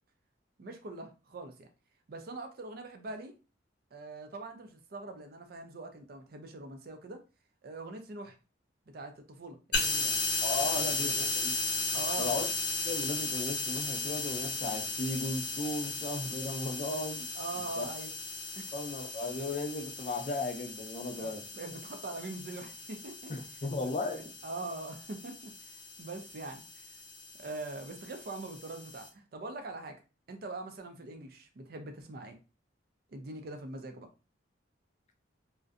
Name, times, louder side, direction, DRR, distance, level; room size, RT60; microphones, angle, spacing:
voice 1, 0.6-1.7 2.1-3.3 3.9-7.2 7.6-8.4 8.9-10.2 10.7-11.3 11.9-12.3 17.3-18.1 18.5-18.7 21.2-23.3 23.8-26.9 27.4-30.0 30.3-32.4 33.1-34.1, right 2 dB, 50° right, 0.4 m, -43 dB
sound 1, 9.7-29.1, left 3 dB, 65° left, 0.7 m, -36 dB
voice 2, 10.4-11.6 12.2-12.5 12.8-17.3 17.8-17.9 18.7-21.5 23.3-24.3, left 2 dB, 35° left, 0.4 m, -36 dB
2.5 x 2.1 x 2.4 m
head